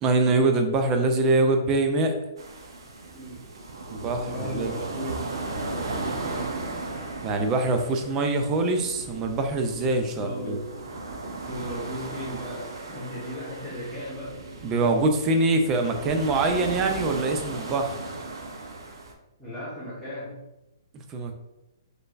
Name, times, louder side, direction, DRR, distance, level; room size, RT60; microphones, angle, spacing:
voice 1, 0.0-2.1 3.9-4.7 7.2-10.6 14.6-18.0 21.1-21.3, right 2 dB, 15° right, 5 dB, 0.3 m, -24 dB
sound 1, 2.4-19.1, right 2 dB, 90° right, 0.7 m, -36 dB
voice 2, 4.2-6.5 10.1-10.7 11.4-14.3 19.4-20.3, equal, ahead, -15 dB, 1.1 m, -36 dB
4.4 x 3.2 x 2.4 m, 0.97 s
hypercardioid pair, 170°, 2 cm